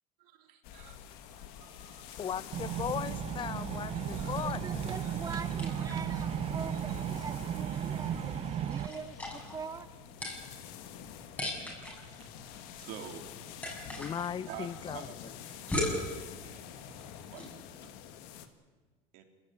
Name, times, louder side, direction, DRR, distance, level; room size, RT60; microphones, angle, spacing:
sound 1, 0.6-18.5, left 9 dB, 80° left, 1.9 m, -47 dB
voice 1, 0.7-2.4 3.9-4.6 5.0-6.0 6.5-7.0 7.7-8.1 11.2-11.5 12.1-13.2 13.7-13.8 14.5-17.5 17.8-17.9 19.1-19.2, right 10 dB, 70° right, 6 dB, 3.4 m, -51 dB
voice 2, 2.2-4.6 14.0-15.0, left 8 dB, 35° left, 19 dB, 0.6 m, -37 dB
sound 2, 2.5-8.9, right 10 dB, 40° right, 0.7 m, -35 dB
voice 3, 4.4-9.9, right 5 dB, 25° right, 12 dB, 1.1 m, -43 dB
sound 3, 5.4-17.6, left 1 dB, 10° left, 6.3 m, -41 dB
25.0 x 16.0 x 9.9 m, 1.3 s
cardioid pair, 125°, 15 cm